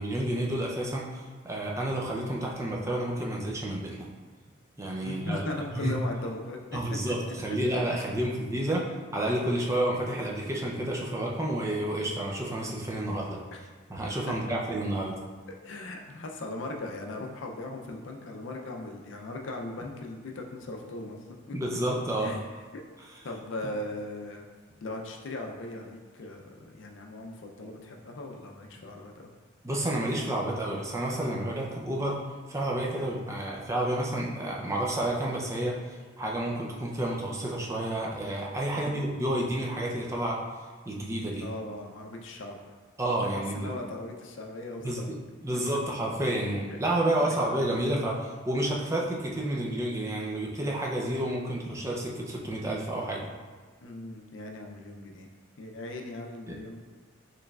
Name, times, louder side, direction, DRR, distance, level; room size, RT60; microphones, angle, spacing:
voice 1, 0.0-4.1 4.8-5.4 5.7-5.9 6.7-8.8 9.1-13.4 13.9-15.1 21.5-22.3 29.6-32.2 32.5-40.4 40.9-41.5 43.0-43.7 44.8-45.1 45.4-53.3 56.5-56.6, right 1 dB, 15° right, -2 dB, 0.4 m, -30 dB
voice 2, 5.0-6.8 7.5-7.6 13.5-13.6 14.5-14.6 15.6-21.2 21.5-21.6 22.2-22.5 22.7-22.8 23.2-24.5 24.8-29.3 38.7-39.1 41.4-42.6 43.5-45.1 46.4-46.5 47.2-47.5 53.8-55.3 55.6-56.8, left 2 dB, 70° left, 2 dB, 0.5 m, -38 dB
4.5 x 3.1 x 2.3 m, 1.5 s
head